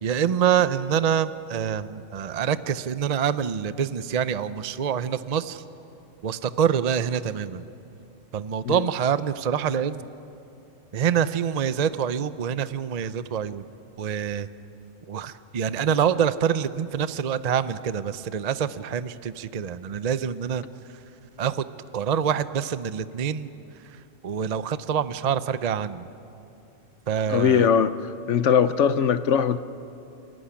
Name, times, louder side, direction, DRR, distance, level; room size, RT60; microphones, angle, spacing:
voice 1, 0.0-5.6 6.2-7.6 8.3-10.1 10.9-13.6 14.0-14.5 15.1-20.6 21.4-21.6 21.9-23.5 24.2-26.1 27.1-27.7, right 8 dB, 45° right, 14 dB, 0.6 m, -26 dB
voice 2, 27.3-27.9 28.3-29.6, left 7 dB, 75° left, 13 dB, 1.0 m, -20 dB
29.0 x 14.0 x 10.0 m, 2.7 s
omnidirectional pair, 1.3 m